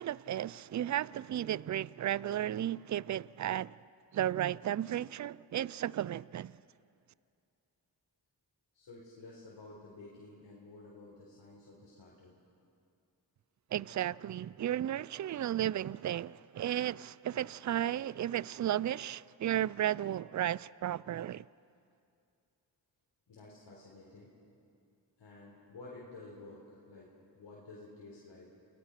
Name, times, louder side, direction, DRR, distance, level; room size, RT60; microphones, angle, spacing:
voice 1, 0.0-3.7 4.1-6.5 13.7-21.4, right 11 dB, 45° right, 0.5 m, -34 dB
voice 2, 8.7-12.3 23.3-24.3 25.2-28.5, left 2 dB, 80° left, 4.5 m, -52 dB
28.5 x 21.0 x 5.9 m
cardioid pair, 50°, 42 cm